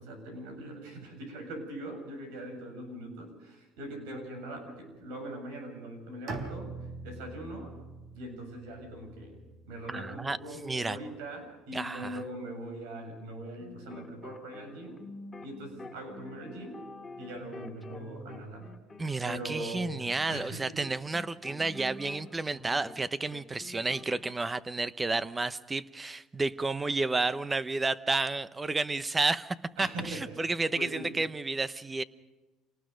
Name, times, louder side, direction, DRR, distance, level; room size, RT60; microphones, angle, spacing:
voice 1, 0.0-7.8 8.1-9.4 9.7-15.0 15.4-16.9 17.2-18.7 19.2-20.9 29.8-30.5 30.7-31.1, right 1 dB, 90° right, 5 dB, 7.2 m, -41 dB
Bowed string instrument, 6.3-10.2, right 3 dB, 55° right, 3.6 m, -43 dB
voice 2, 9.9-10.4 10.6-11.0 11.7-12.2 19.0-32.0, right 3 dB, 15° right, 15 dB, 0.8 m, -31 dB
sound 1, 13.5-23.1 23.3-24.3, left 3 dB, 20° left, 2.2 m, -47 dB
27.0 x 19.0 x 5.2 m, 1.2 s
cardioid pair, 110°, 0 cm